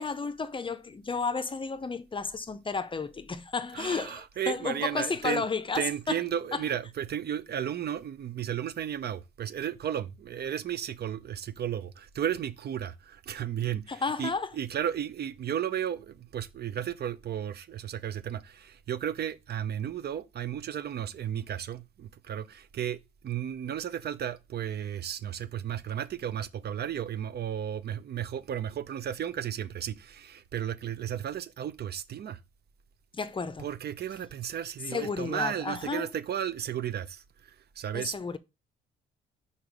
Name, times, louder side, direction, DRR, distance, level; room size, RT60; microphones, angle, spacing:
voice 1, 0.0-6.2 6.5-6.6 13.9-14.5 33.1-33.7 34.9-36.1 37.9-38.4, left 4 dB, 25° left, 0.6 m, -32 dB
voice 2, 3.7-5.4 5.7-32.4 33.6-38.1, right 9 dB, 55° right, 0.7 m, -34 dB
4.7 x 4.3 x 5.1 m
cardioid pair, 90°, 20 cm